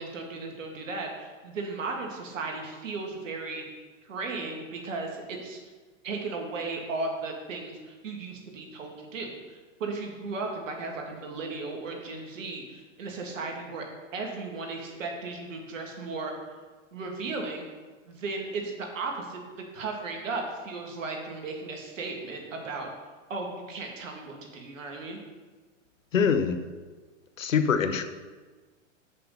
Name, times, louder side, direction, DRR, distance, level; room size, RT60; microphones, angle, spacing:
voice 1, 0.0-3.6 4.0-5.6 6.0-13.8 14.1-16.3 16.9-17.7 18.1-19.4 19.7-22.9 23.3-25.2, right 3 dB, 75° right, 2 dB, 2.2 m, -35 dB
voice 2, 26.1-26.6 27.4-28.0, left 6 dB, 90° left, 9 dB, 0.9 m, -24 dB
6.9 x 6.7 x 5.7 m, 1.3 s
hypercardioid pair, 115°, 38 cm